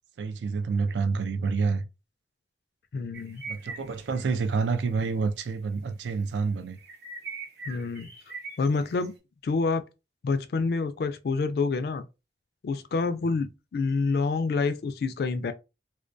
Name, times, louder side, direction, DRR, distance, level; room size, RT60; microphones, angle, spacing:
voice 1, 0.2-1.8 3.5-6.8 13.2-13.3, right 4 dB, 85° right, 0.4 m, -28 dB
voice 2, 2.9-3.4 7.7-8.1 8.6-9.1 9.4-9.8 10.2-12.1 12.6-15.5, left 4 dB, 60° left, 0.3 m, -27 dB
sound 1, 3.1-4.2 4.5-4.8 5.1-5.2 6.8-9.1, right 4 dB, 65° right, 0.9 m, -41 dB
2.2 x 2.2 x 2.5 m
head